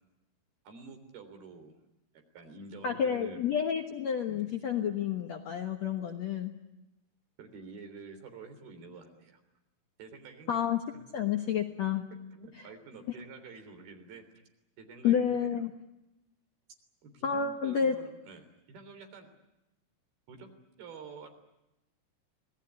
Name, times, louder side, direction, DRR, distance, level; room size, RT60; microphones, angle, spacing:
voice 1, 0.7-1.7 2.3-3.4 4.3-4.5 7.4-9.4 10.0-10.6 10.9-11.0 12.3-14.3 14.8-15.6 17.0-19.3 20.3-20.5 20.8-21.3, right 4 dB, 70° right, 6 dB, 5.4 m, -48 dB
voice 2, 2.8-6.5 10.5-10.8 11.1-12.0 15.0-15.7 17.2-18.0, left 8 dB, 60° left, 5 dB, 2.0 m, -29 dB
26.5 x 19.5 x 9.9 m, 0.93 s
omnidirectional pair, 4.5 m